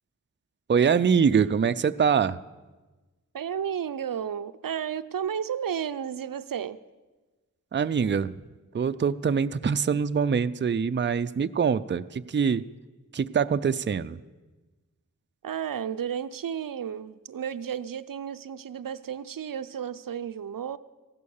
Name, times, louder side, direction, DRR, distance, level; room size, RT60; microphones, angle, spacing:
voice 1, 0.7-2.4 7.7-8.4 8.7-12.6 13.1-14.2, right 6 dB, 35° right, 12 dB, 0.4 m, -24 dB
voice 2, 3.3-6.8 15.4-20.8, right 8 dB, 90° right, 13 dB, 0.6 m, -32 dB
15.5 x 11.5 x 7.1 m, 1.2 s
wide cardioid pair, 80°, 33 cm